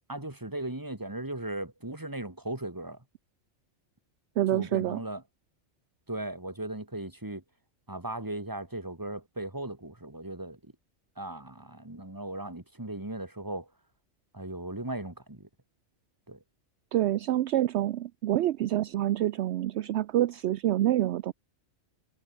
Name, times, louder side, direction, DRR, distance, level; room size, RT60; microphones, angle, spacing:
voice 1, 0.1-3.0 4.5-5.2 6.1-7.4 7.9-10.6 11.2-13.7 14.3-15.5 16.3-16.4, right 1 dB, 15° right, 2.6 m, -37 dB
voice 2, 4.4-5.0 16.9-21.3, right 13 dB, 70° right, 0.8 m, -27 dB
omnidirectional pair, 1.2 m